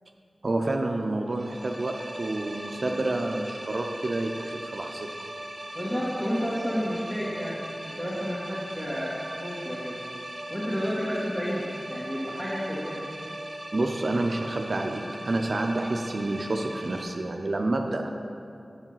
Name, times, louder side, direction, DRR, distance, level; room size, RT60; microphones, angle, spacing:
voice 1, 0.4-5.1 13.7-18.1, right 2 dB, 60° right, 3 dB, 0.5 m, -29 dB
sound 1, 1.3-17.0, right 1 dB, 30° right, 1.0 m, -39 dB
voice 2, 5.7-10.0 10.5-13.0, equal, 35° left, -11 dB, 2.0 m, -31 dB
8.4 x 4.8 x 5.7 m, 2.5 s
cardioid pair, 50°, 0 cm